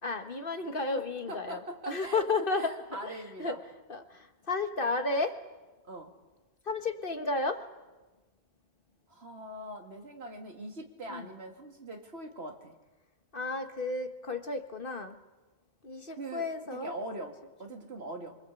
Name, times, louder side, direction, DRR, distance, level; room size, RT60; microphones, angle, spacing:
voice 1, 0.0-2.8 3.0-3.6 3.9-5.4 6.6-7.7 11.1-11.3 13.3-15.2 15.8-16.9 17.2-17.3, left 3 dB, 50° left, 6 dB, 1.8 m, -33 dB
voice 2, 1.3-2.2 2.6-3.6 5.8-6.1 9.1-12.8 16.2-18.4, right 1 dB, 65° right, 3 dB, 2.8 m, -42 dB
25.5 x 24.5 x 8.4 m, 1.2 s
omnidirectional pair, 1.1 m